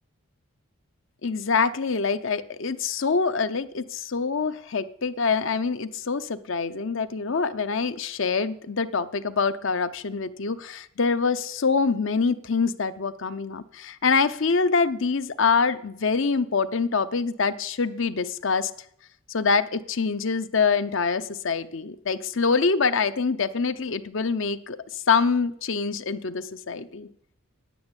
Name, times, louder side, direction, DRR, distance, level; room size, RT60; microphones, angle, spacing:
voice 1, 1.2-18.7 19.3-24.8 25.1-27.1, left 5 dB, 60° left, 14 dB, 0.8 m, -25 dB
10.0 x 9.0 x 8.2 m, 0.70 s
head